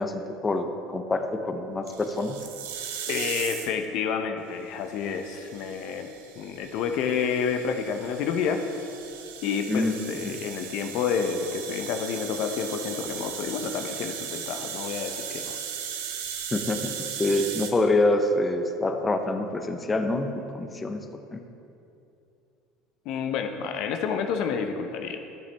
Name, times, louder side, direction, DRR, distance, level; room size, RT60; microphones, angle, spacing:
voice 1, 0.0-2.4 9.7-9.9 10.2-10.3 16.5-21.4, left 2 dB, 20° left, 6 dB, 0.7 m, -26 dB
sound 1, 1.9-3.8 4.9-17.7, right 8 dB, 85° right, 0.7 m, -37 dB
voice 2, 3.1-8.6 9.4-15.6 23.1-25.2, left 6 dB, 65° left, 5 dB, 0.6 m, -29 dB
10.5 x 8.6 x 3.4 m, 2.7 s
supercardioid pair, 95°, 0 cm